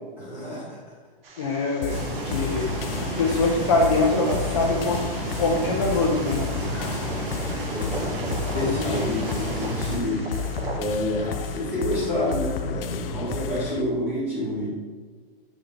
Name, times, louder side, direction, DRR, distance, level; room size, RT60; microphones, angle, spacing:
voice 1, 0.2-0.8 7.7-8.4 8.8-10.2 10.7-14.7, left 1 dB, 5° right, -10 dB, 1.9 m, -28 dB
sound 1, 1.2-10.8, right 3 dB, 80° right, 1.1 m, -39 dB
voice 2, 1.4-2.0 2.3-2.7 3.0-5.0 5.4-6.4 6.7-6.9 8.5-9.2, left 3 dB, 30° left, -4 dB, 0.6 m, -24 dB
sound 2, 1.8-13.8, left 6 dB, 75° left, 0.5 m, -32 dB
sound 3, 1.9-10.0, right 2 dB, 65° right, 1.4 m, -32 dB
8.3 x 3.9 x 3.4 m, 1.4 s
hypercardioid pair, 180°, 29 cm